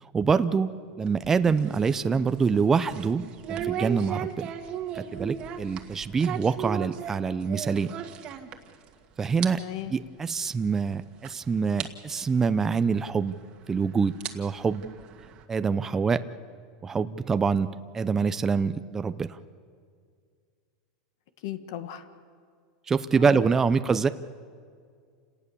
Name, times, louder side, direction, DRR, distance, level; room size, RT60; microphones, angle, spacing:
voice 1, 0.0-3.2 3.5-4.5 4.9-7.9 9.2-9.6 9.9-13.4 13.7-14.8 15.5-16.2 16.8-17.7 17.9-19.4 22.9-24.1, right 5 dB, 15° right, 11 dB, 0.6 m, -25 dB
sound 1, 1.0-8.9 9.2-9.5 9.8-9.9 10.7-10.8 11.2-11.3 11.8-11.9 13.2-13.3 14.0-15.4, right 10 dB, 40° right, 1.8 m, -36 dB
voice 2, 9.6-9.9 21.4-22.0 23.2-23.4, left 13 dB, 70° left, 9 dB, 1.6 m, -35 dB
28.5 x 18.5 x 7.0 m, 2.1 s
supercardioid pair, 140°, 2 cm